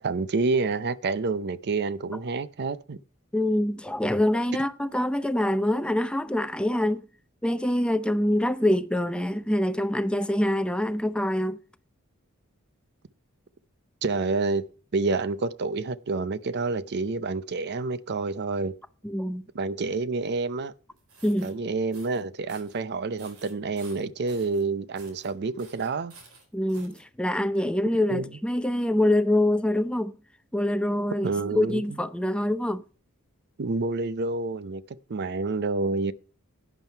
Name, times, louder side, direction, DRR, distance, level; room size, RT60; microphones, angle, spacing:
voice 1, 0.0-3.0 14.0-14.6 14.9-18.7 19.5-20.7 21.4-26.1 28.1-28.2 31.2-31.8 33.6-36.1, right 3 dB, 50° right, 0.6 m, -28 dB
voice 2, 3.3-7.1 7.4-11.6 19.0-19.4 21.2-21.6 26.5-30.1 30.5-32.8, left 1 dB, 5° left, 0.5 m, -25 dB
sound 1, 21.0-21.5 21.9-22.2 22.5-22.8 23.2-24.6 24.9-25.3 25.6-27.0, right 4 dB, 85° right, 3.8 m, -51 dB
11.5 x 9.2 x 4.4 m
head